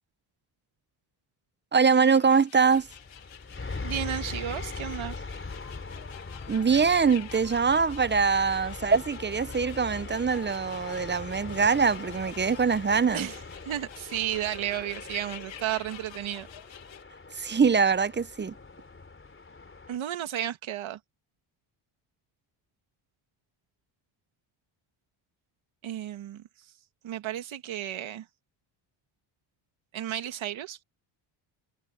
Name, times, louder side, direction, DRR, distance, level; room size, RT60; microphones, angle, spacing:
voice 1, 1.7-2.9 6.5-13.3 17.3-18.5, right 5 dB, 20° right, 0.7 m, -23 dB
sound 1, 1.9-17.0, left 10 dB, 65° left, 2.3 m, -49 dB
sound 2, 2.6-20.0, left 3 dB, 25° left, 3.8 m, -41 dB
voice 2, 3.8-5.2 13.1-13.4 13.6-16.5 19.9-21.0 25.8-26.4 27.0-28.2 29.9-30.8, right 11 dB, 65° right, 1.9 m, -33 dB
sound 3, 5.3-12.7, left 14 dB, 85° left, 2.6 m, -52 dB
cardioid pair, 80°, 50 cm